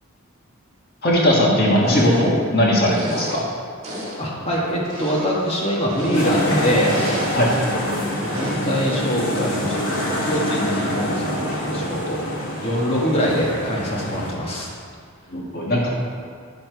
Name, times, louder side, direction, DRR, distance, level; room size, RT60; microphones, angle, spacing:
voice 1, 1.0-3.4 7.3-7.5 15.3-15.9, equal, 50° left, -4 dB, 1.5 m, -18 dB
sound 1, 1.8-2.5 2.8-3.6 3.8-4.3 4.8-6.5 6.8-7.7 8.3-8.7, equal, 35° right, 2.2 m, -30 dB
voice 2, 3.9-7.0 7.9-12.2 12.6-14.7, equal, 30° left, -4 dB, 1.6 m, -24 dB
sound 2, 6.1-14.3, equal, 80° left, 1.9 m, -25 dB
10.5 x 6.5 x 4.6 m, 2.1 s
head